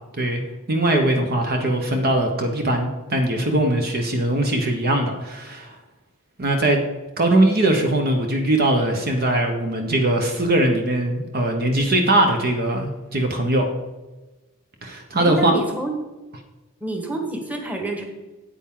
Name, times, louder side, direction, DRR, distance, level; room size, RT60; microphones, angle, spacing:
voice 1, 0.7-5.7 6.4-6.8 7.2-13.6 14.8-15.5, right 1 dB, 45° right, 3 dB, 1.1 m, -21 dB
voice 2, 15.2-15.9 16.8-18.0, right 2 dB, 5° right, 2 dB, 1.5 m, -27 dB
8.9 x 8.6 x 3.8 m, 1.2 s
head